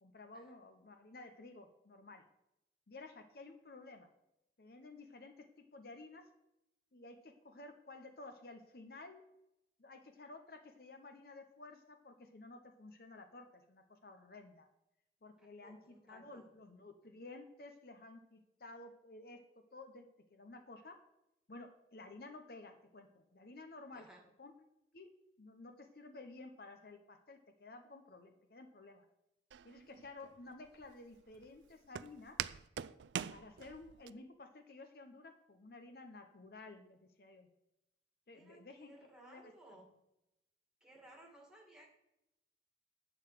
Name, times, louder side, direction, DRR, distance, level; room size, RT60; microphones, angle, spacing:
voice 1, 0.0-2.2 2.9-4.1 4.6-6.2 6.9-9.2 9.8-14.7 15.2-15.8 16.0-19.4 19.7-21.0 21.5-24.1 24.4-24.5 24.9-25.1 25.4-29.1 29.6-32.4 33.3-37.5 38.3-39.8, left 2 dB, 55° left, 6 dB, 0.8 m, -53 dB
voice 2, 15.4-16.5 23.9-24.2 38.3-39.9 40.8-41.8, right 1 dB, 5° right, -1 dB, 2.2 m, -60 dB
Walk footsteps, 29.5-34.1, right 9 dB, 90° right, 0.4 m, -44 dB
11.0 x 3.9 x 7.6 m, 0.87 s
head